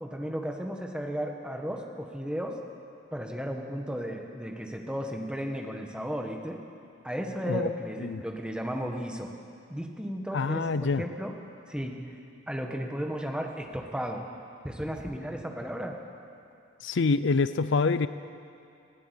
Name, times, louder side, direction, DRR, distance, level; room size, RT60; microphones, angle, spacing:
voice 1, 0.0-2.6 3.1-6.6 7.0-9.3 9.7-11.4 11.7-12.2 12.5-14.3 14.6-16.0, equal, 5° right, 2 dB, 1.5 m, -34 dB
voice 2, 10.3-11.0 16.8-18.1, left 4 dB, 65° left, 14 dB, 0.5 m, -26 dB
19.5 x 16.5 x 8.3 m, 2.5 s
head